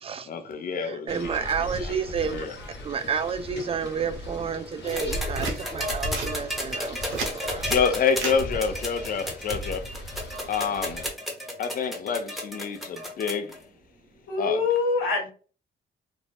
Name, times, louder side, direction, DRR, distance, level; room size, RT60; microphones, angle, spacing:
voice 1, 0.3-1.4 1.8-2.6 6.5-6.7 7.6-11.1 11.6-13.6 14.4-14.6, left 6 dB, 45° left, 0.5 m, -28 dB
voice 2, 0.8-2.5 2.8-7.7, right 6 dB, 30° right, 0.4 m, -30 dB
sound 1, 1.1-11.1, left 1 dB, 60° left, 1.1 m, -37 dB
sound 2, 4.9-13.6 14.8-14.9, equal, ahead, 0.9 m, -33 dB
sound 3, 5.3-5.6 6.1-6.3 6.9-7.4 8.1-8.4 9.7-10.0, right 3 dB, 85° right, 0.9 m, -31 dB
voice 3, 14.3-15.3, left 4 dB, 80° left, 1.0 m, -24 dB
2.6 x 2.1 x 3.2 m
cardioid pair, 90°, 20 cm